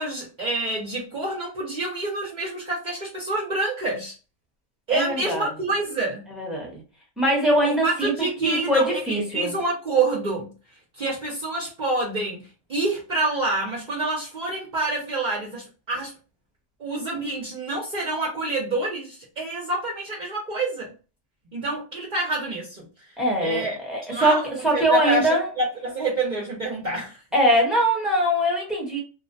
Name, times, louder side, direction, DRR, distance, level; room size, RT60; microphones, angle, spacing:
voice 1, 0.0-4.1 4.9-6.2 7.6-10.5 10.9-16.1 16.8-20.9 21.5-23.1 23.4-23.8 24.1-27.2, right 2 dB, 45° right, -3 dB, 0.7 m, -27 dB
voice 2, 4.9-5.5 6.3-6.8 7.2-9.5 23.2-25.5 27.3-29.0, right 1 dB, ahead, -3 dB, 0.7 m, -22 dB
2.5 x 2.1 x 2.6 m, 0.34 s
omnidirectional pair, 1.2 m